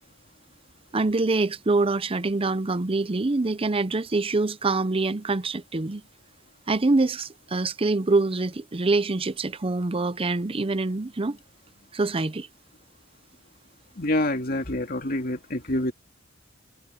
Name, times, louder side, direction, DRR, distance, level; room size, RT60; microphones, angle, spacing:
voice 1, 0.9-6.0 6.7-11.4 11.9-12.5, right 3 dB, 30° right, 0.6 m, -25 dB
voice 2, 14.0-15.9, left 1 dB, 50° left, 2.8 m, -26 dB
head